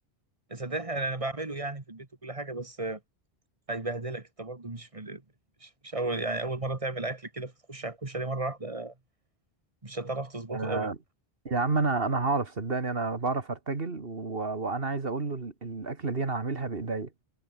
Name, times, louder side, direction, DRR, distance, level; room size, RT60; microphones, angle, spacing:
voice 1, 0.5-3.0 3.7-5.2 5.6-8.9 9.8-10.9, right 2 dB, 35° right, 1.9 m, -34 dB
voice 2, 10.5-11.0 11.4-17.1, right 3 dB, 65° right, 2.3 m, -30 dB
omnidirectional pair, 1.0 m